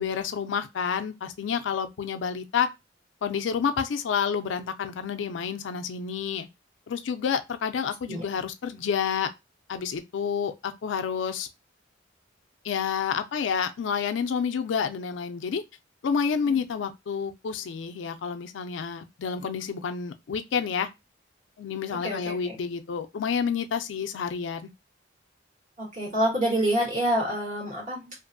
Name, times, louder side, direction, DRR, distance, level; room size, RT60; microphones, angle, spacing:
voice 1, 0.0-2.7 3.2-6.5 6.9-9.3 9.7-11.5 12.6-15.6 16.0-20.9 21.6-24.7, left 6 dB, 80° left, 0.4 m, -29 dB
voice 2, 22.0-22.5 25.8-28.1, right 1 dB, 45° right, 1.5 m, -27 dB
2.6 x 2.5 x 2.5 m
head